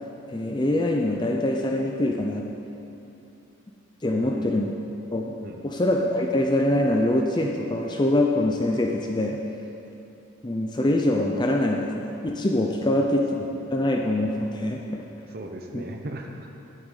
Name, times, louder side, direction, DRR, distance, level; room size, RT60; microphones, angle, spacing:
voice 1, 0.3-2.5 4.0-4.7 5.1-5.3 5.6-9.4 10.4-13.4 13.7-15.0 15.7-15.8, left 1 dB, 20° left, 1 dB, 0.6 m, -24 dB
voice 2, 4.1-4.5 5.4-5.6 12.9-13.1 13.4-13.7 15.3-16.5, right 1 dB, 45° right, 2 dB, 0.9 m, -38 dB
9.0 x 8.3 x 9.1 m, 2.9 s
head